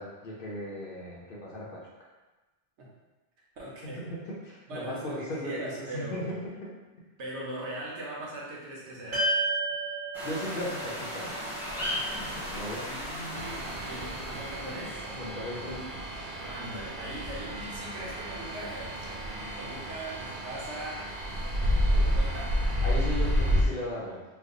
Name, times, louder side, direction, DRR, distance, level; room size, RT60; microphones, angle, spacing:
voice 1, 0.0-2.1 3.8-6.4 10.2-11.3 12.5-12.9 15.0-16.0 22.8-24.2, left 1 dB, 55° left, -4 dB, 0.8 m, -37 dB
voice 2, 3.6-4.0 4.7-6.3 7.2-9.3 11.7-12.2 12.8-15.1 16.4-21.0 21.8-22.5, right 1 dB, 90° right, -4 dB, 1.1 m, -40 dB
sound 1, 9.1-13.6, right 2 dB, 40° right, 1.5 m, -33 dB
sound 2, 10.1-15.2, equal, ahead, 0.8 m, -37 dB
sound 3, 13.3-23.6, equal, 60° right, 0.6 m, -30 dB
3.3 x 2.0 x 3.6 m, 1.1 s
omnidirectional pair, 1.1 m